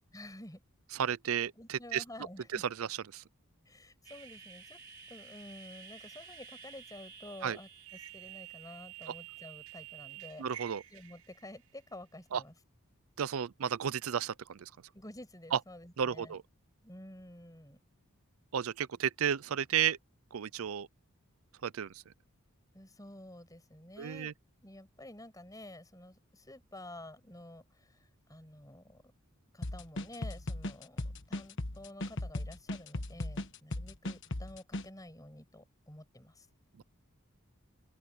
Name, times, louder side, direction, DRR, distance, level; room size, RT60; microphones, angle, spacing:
voice 1, 0.1-0.6 1.5-2.6 3.7-4.8 5.1-10.5 10.9-12.5 14.9-16.4 16.8-17.8 22.7-24.3 24.6-29.0 29.5-31.0 31.3-36.5, left 1 dB, 15° left, 6.2 m, -50 dB
voice 2, 1.0-2.0 2.5-3.2 7.4-7.6 10.4-10.8 12.3-12.4 13.2-14.7 15.5-15.6 16.0-16.4 18.5-20.0 20.3-20.9 21.6-21.9 24.0-24.3, right 8 dB, 70° right, 0.5 m, -33 dB
sound 1, 4.0-11.6, right 9 dB, 85° right, 6.8 m, -50 dB
sound 2, 29.6-34.9, left 1 dB, 55° left, 1.4 m, -37 dB
open air
head